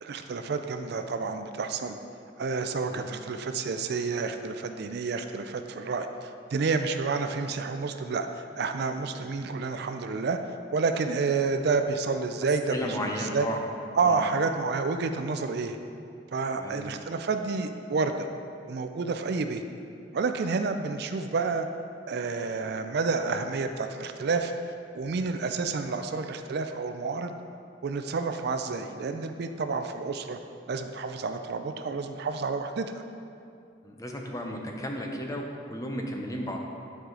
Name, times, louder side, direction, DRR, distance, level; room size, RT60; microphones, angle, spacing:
voice 1, 0.0-2.0 2.4-10.4 10.7-13.5 14.0-15.8 16.3-18.3 18.7-19.6 20.1-21.7 22.1-24.5 24.9-27.3 27.8-30.4 30.7-33.0, right 4 dB, 60° right, 7 dB, 0.4 m, -29 dB
voice 2, 12.7-13.6 14.0-14.2 16.5-16.9 33.8-36.6, equal, 20° left, 1 dB, 0.7 m, -34 dB
10.5 x 4.8 x 3.8 m, 2.5 s
head